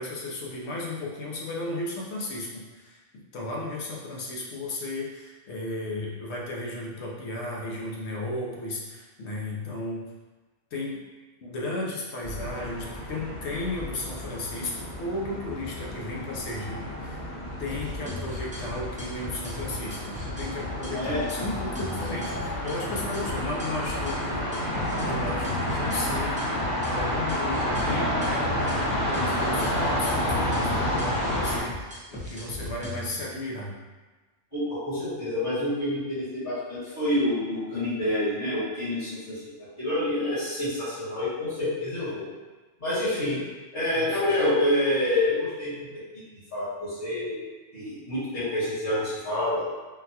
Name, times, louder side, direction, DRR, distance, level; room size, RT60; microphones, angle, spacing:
voice 1, 0.0-3.0 3.3-10.1 10.7-11.0 11.4-17.2 17.6-24.6 25.0-26.3 26.9-33.7 43.9-44.2, left 2 dB, 70° left, -3 dB, 0.9 m, -34 dB
sound 1, 12.2-31.6, left 1 dB, 30° left, 1.0 m, -30 dB
sound 2, 17.7-33.1, left 2 dB, 10° right, 0.5 m, -38 dB
voice 2, 34.5-39.4 39.8-42.3 42.8-43.4 43.7-45.9 46.5-47.4 47.7-49.6, left 1 dB, 45° left, -13 dB, 1.5 m, -27 dB
3.8 x 2.2 x 2.8 m, 1.3 s
omnidirectional pair, 1.2 m